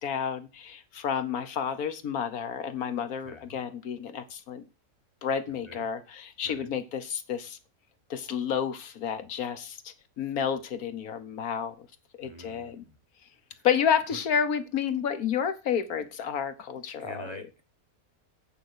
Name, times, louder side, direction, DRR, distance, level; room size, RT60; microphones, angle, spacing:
voice 1, 0.0-4.6 5.2-7.6 8.1-11.9 12.2-12.8 13.6-17.4, left 8 dB, 75° left, 1.4 m, -30 dB
voice 2, 3.2-3.6 5.5-5.9 6.4-6.7 12.2-12.9 13.5-13.7 14.1-14.2 17.0-17.6, right 1 dB, 20° right, 1.3 m, -46 dB
9.0 x 5.1 x 6.6 m
omnidirectional pair, 1.6 m